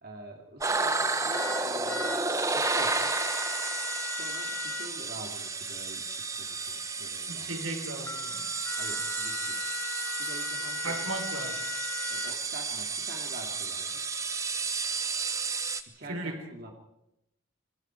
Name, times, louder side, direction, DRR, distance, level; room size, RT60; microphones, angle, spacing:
voice 1, 0.0-2.2 2.5-3.2 4.2-7.5 8.8-9.7 10.2-11.1 12.1-14.0 15.9-16.7, right 1 dB, 45° right, 2.7 m, -46 dB
sound 1, 0.6-15.8, right 4 dB, 15° right, 1.2 m, -32 dB
sound 2, 1.3-2.2 2.6-4.9 8.6-12.3, left 5 dB, 80° left, 3.7 m, -37 dB
voice 2, 7.3-8.5 10.8-11.6 16.1-16.4, right 2 dB, 75° right, 3.6 m, -36 dB
sound 3, 8.1-10.7, left 3 dB, 10° left, 1.0 m, -47 dB
26.0 x 22.5 x 4.7 m
head